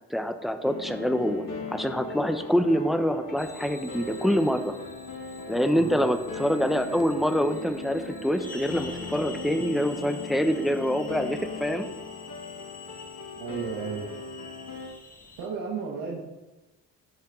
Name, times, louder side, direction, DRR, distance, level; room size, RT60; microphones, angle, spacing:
voice 1, 0.1-1.4 1.7-4.7 5.5-11.9, equal, ahead, 8 dB, 1.0 m, -25 dB
sound 1, 0.6-14.9, left 3 dB, 50° left, 2.5 m, -39 dB
sound 2, 3.4-15.5, left 4 dB, 20° left, 1.9 m, -47 dB
voice 2, 5.6-6.1 13.3-14.1 15.4-16.2, right 5 dB, 75° right, -3 dB, 1.6 m, -33 dB
14.5 x 5.7 x 3.9 m, 1.1 s
hypercardioid pair, 50°, 41 cm